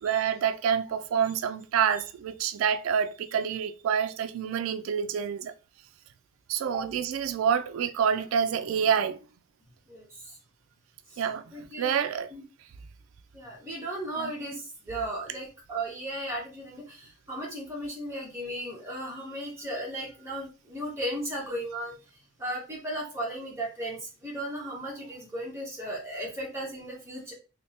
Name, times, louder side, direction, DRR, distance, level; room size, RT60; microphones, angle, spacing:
voice 1, 0.0-5.5 6.5-9.2 11.2-11.4 11.8-12.3 14.2-14.3, right 7 dB, 85° right, 0.3 m, -27 dB
voice 2, 9.9-10.4 11.1-11.2 11.5-12.0 12.3-12.4 13.3-21.9 22.4-27.3, right 1 dB, 15° right, 1.3 m, -36 dB
3.3 x 3.1 x 2.8 m
head